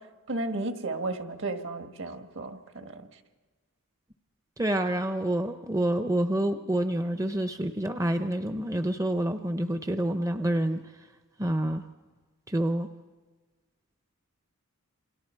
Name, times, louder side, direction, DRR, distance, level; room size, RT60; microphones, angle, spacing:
voice 1, 0.0-3.1, right 2 dB, 60° right, 6 dB, 1.7 m, -34 dB
voice 2, 4.6-10.8 11.4-11.8 12.5-12.9, right 1 dB, 15° right, 8 dB, 0.6 m, -27 dB
28.0 x 26.5 x 4.5 m, 1.3 s
head